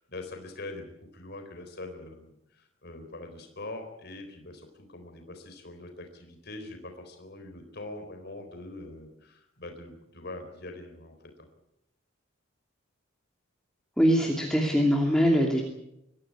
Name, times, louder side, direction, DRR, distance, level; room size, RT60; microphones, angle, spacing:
voice 1, 0.0-11.5, left 2 dB, 50° left, 5 dB, 4.0 m, -43 dB
voice 2, 14.0-15.6, equal, 5° left, 0 dB, 2.6 m, -22 dB
23.5 x 15.5 x 9.9 m, 0.83 s
head